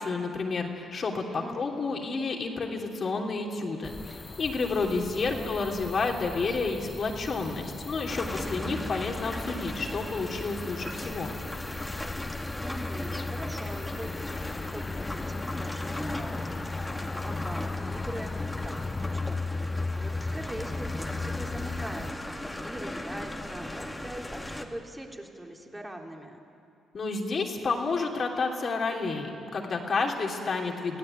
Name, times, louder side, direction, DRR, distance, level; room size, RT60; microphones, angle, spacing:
voice 1, 0.0-11.3 26.9-31.0, left 4 dB, 50° left, 1 dB, 3.2 m, -30 dB
sound 1, 3.8-22.1, left 3 dB, 30° left, 0.8 m, -36 dB
sound 2, 8.1-24.7, left 1 dB, 15° left, 2.3 m, -38 dB
voice 2, 12.6-19.4 19.7-26.4, right 1 dB, 10° right, 1 dB, 3.3 m, -42 dB
25.0 x 16.5 x 9.2 m, 2.5 s
supercardioid pair, 60°, 0 cm